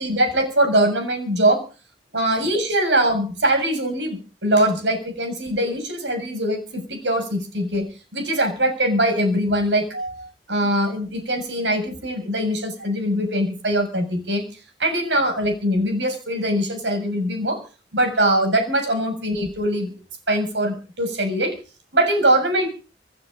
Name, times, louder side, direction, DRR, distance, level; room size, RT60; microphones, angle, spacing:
voice 1, 0.0-1.6 2.1-14.4 14.8-17.6 17.9-19.9 20.3-21.6 21.9-22.7, right 1 dB, 90° right, 6 dB, 6.9 m, -22 dB
27.0 x 9.6 x 5.3 m, 0.36 s
head